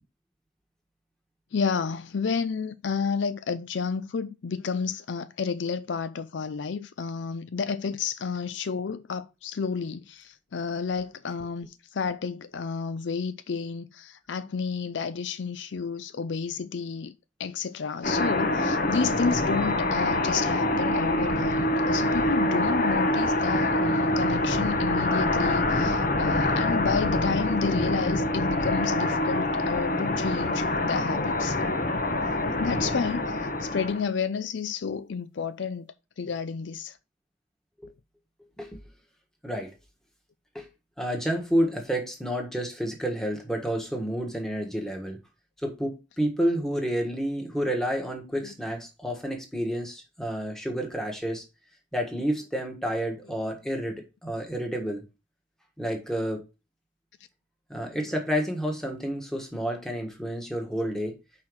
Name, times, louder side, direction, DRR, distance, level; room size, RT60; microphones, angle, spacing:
voice 1, 1.5-17.1 17.4-31.6 32.6-35.9 36.2-37.0 48.4-48.5, left 5 dB, 65° left, 0.5 m, -31 dB
sound 1, 18.0-34.0, left 1 dB, 50° left, 1.0 m, -25 dB
voice 2, 39.4-39.7 40.5-40.7 41.0-45.2 45.6-51.4 51.9-55.0 55.8-56.4 57.7-61.2, equal, ahead, 1.5 m, -30 dB
5.7 x 4.4 x 6.2 m
head